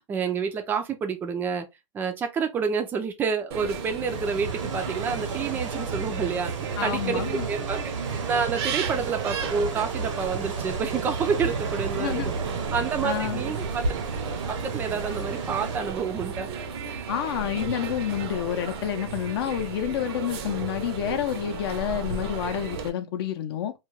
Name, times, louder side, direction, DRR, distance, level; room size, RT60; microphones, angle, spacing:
voice 1, 0.0-1.7 1.9-6.5 6.8-7.8 8.3-12.3 12.7-14.0 14.5-16.5 16.8-17.1, right 6 dB, 10° right, 0.4 m, -29 dB
sound 1, 3.5-22.9, right 6 dB, 55° right, 0.6 m, -34 dB
sound 2, 4.1-15.8, right 4 dB, 85° right, 1.0 m, -33 dB
voice 2, 6.8-7.5 11.9-12.3 13.0-13.4 17.1-23.7, left 10 dB, 55° left, 0.6 m, -29 dB
2.3 x 2.2 x 3.0 m
hypercardioid pair, 145°, 16 cm